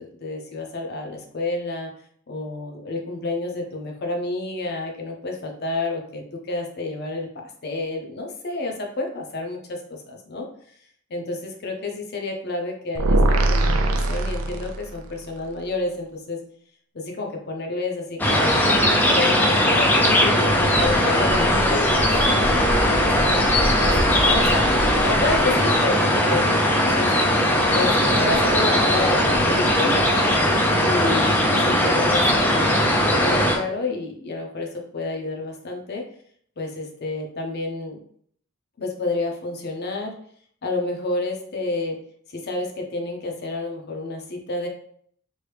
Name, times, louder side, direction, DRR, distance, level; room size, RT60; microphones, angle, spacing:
voice 1, 0.0-1.9 2.3-7.3 7.6-10.5 11.1-16.4 16.9-22.1 22.7-27.1 27.7-30.1 30.8-36.0 36.6-38.0 38.8-40.1 40.6-42.0 42.3-44.7, left 2 dB, 50° left, 2 dB, 0.6 m, -30 dB
sound 1, 13.0-15.1, right 2 dB, 85° right, 0.4 m, -21 dB
sound 2, 18.2-33.6, left 1 dB, 10° left, 0.4 m, -19 dB
3.1 x 2.6 x 3.2 m, 0.63 s
head